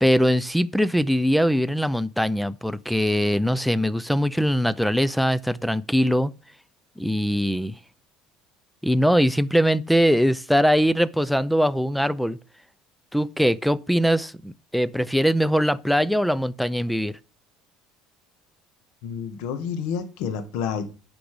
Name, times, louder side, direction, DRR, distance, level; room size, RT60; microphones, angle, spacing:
voice 1, 0.0-6.3 7.0-7.8 8.8-12.4 13.1-17.1, equal, ahead, 0.5 m, -21 dB
voice 2, 19.0-20.8, left 7 dB, 75° left, 1.9 m, -29 dB
10.5 x 6.1 x 5.1 m
cardioid pair, 135°, 0 cm